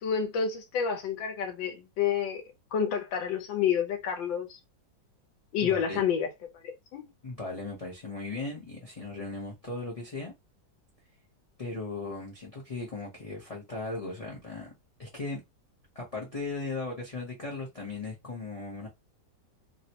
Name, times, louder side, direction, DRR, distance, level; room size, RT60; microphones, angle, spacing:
voice 1, 0.0-2.4 2.7-4.6 5.5-6.3 6.6-7.1, left 7 dB, 80° left, 1.6 m, -29 dB
voice 2, 5.6-6.0 7.2-10.3 11.6-14.7 15.0-15.4 15.9-18.9, left 3 dB, 35° left, 0.6 m, -37 dB
3.8 x 2.1 x 2.8 m
omnidirectional pair, 2.0 m